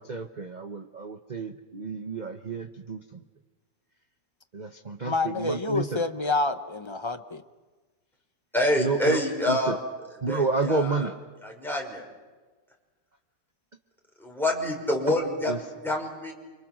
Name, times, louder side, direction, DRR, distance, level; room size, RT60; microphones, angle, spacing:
voice 1, 0.0-3.2 4.5-6.0 8.8-9.2 9.5-9.7 10.2-11.1 15.5-15.6, right 4 dB, 35° right, 6 dB, 0.8 m, -30 dB
voice 2, 5.0-7.4, left 3 dB, 25° left, 9 dB, 0.6 m, -28 dB
voice 3, 8.5-9.8 10.2-11.1 11.4-12.1 14.2-16.3, left 1 dB, ahead, -1 dB, 5.6 m, -27 dB
29.5 x 26.5 x 6.2 m, 1.3 s
omnidirectional pair, 2.0 m